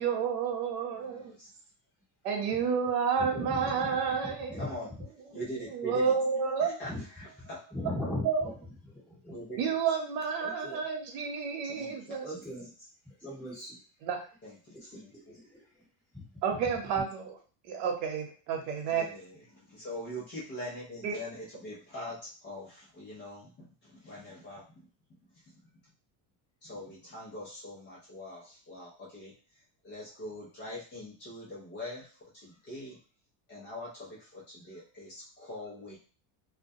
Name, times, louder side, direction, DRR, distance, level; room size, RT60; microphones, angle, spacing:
voice 1, 0.0-1.3 2.2-4.7 5.7-6.8 8.2-8.5 9.6-12.3 14.0-14.2 16.4-17.4 17.7-19.1 21.0-21.1, right 6 dB, 80° right, 2 dB, 0.9 m, -30 dB
voice 2, 0.9-1.5 4.6-4.9 5.3-6.1 6.6-7.6 9.3-9.7 11.7-12.5 14.4-15.3 18.9-24.9 26.6-29.3 29.8-33.0 33.5-36.0, equal, 25° left, -6 dB, 0.4 m, -43 dB
voice 3, 3.2-4.7 6.9-7.0 7.4-8.2 8.9-9.3 10.4-10.8 12.2-12.7 13.0-13.8 14.9-15.4, left 1 dB, 5° left, -9 dB, 1.3 m, -39 dB
2.2 x 2.1 x 2.6 m, 0.37 s
cardioid pair, 180°, 48 cm